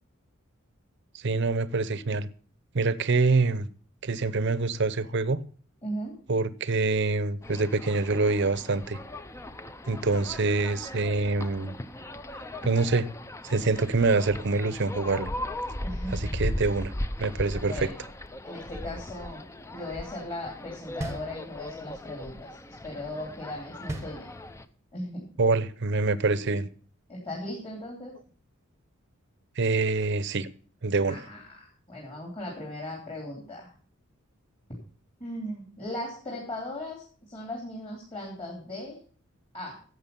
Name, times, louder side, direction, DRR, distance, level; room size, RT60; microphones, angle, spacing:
voice 1, 1.1-2.3 2.7-3.7 4.0-5.4 6.3-9.0 9.9-11.8 12.6-13.0 13.4-15.3 16.1-16.9 17.2-17.9 25.4-26.7 29.6-30.5 30.8-31.2, right 3 dB, 55° right, 15 dB, 0.7 m, -25 dB
voice 2, 5.8-6.2 15.8-16.3 17.7-17.9 18.4-19.4 19.7-22.5 22.8-24.3 24.9-25.3 27.1-28.1 31.1-33.7 35.2-39.0 39.5-39.8, left 1 dB, 30° left, -3 dB, 2.9 m, -37 dB
sound 1, 7.4-24.7, left 1 dB, 15° left, 0.5 m, -38 dB
sound 2, 21.0-21.9 23.9-24.8, right 1 dB, 15° right, 0.9 m, -37 dB
11.5 x 7.7 x 5.3 m, 0.43 s
head